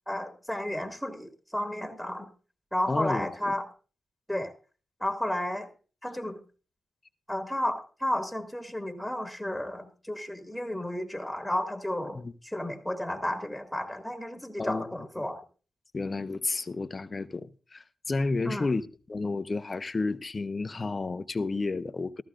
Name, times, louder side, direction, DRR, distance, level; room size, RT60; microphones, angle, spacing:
voice 1, 0.1-2.3 2.7-3.7 4.3-4.5 5.0-5.7 6.0-6.4 7.3-15.4 18.4-18.7, left 1 dB, ahead, 2.2 m, -32 dB
voice 2, 2.9-3.5 12.1-12.3 14.6-14.9 15.9-18.8 19.1-22.2, left 3 dB, 40° left, 0.7 m, -31 dB
14.5 x 13.0 x 2.5 m
cardioid pair, 60°, 0 cm